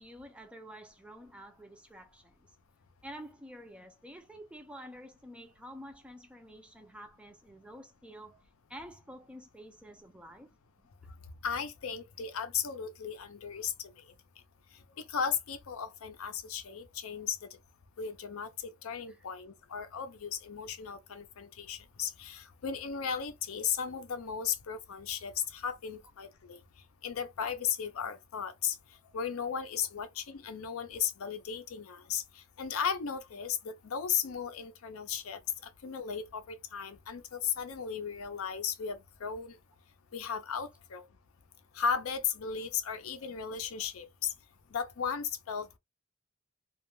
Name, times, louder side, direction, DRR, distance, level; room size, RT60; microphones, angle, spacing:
voice 1, 0.0-2.5 3.0-10.9 19.1-19.2, equal, 5° right, 0.4 m, -49 dB
voice 2, 11.4-13.7 15.1-17.5 18.0-26.6 27.0-28.8 29.1-39.6 40.1-41.0 41.7-44.3 44.7-45.8, left 7 dB, 80° left, 0.5 m, -35 dB
2.3 x 2.1 x 3.0 m
head